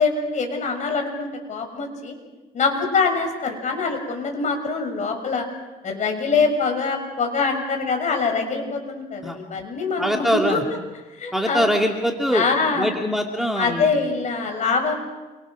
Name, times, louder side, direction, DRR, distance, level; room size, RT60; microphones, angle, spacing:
voice 1, 0.0-2.1 2.5-5.4 5.8-10.6 11.2-11.7 12.3-13.0 13.6-14.9, left 4 dB, 45° left, 4 dB, 6.9 m, -24 dB
voice 2, 10.0-10.6 11.3-12.4 12.7-13.9, equal, ahead, 1 dB, 2.6 m, -22 dB
28.5 x 25.5 x 6.5 m, 1.1 s
cardioid pair, 110°, 17 cm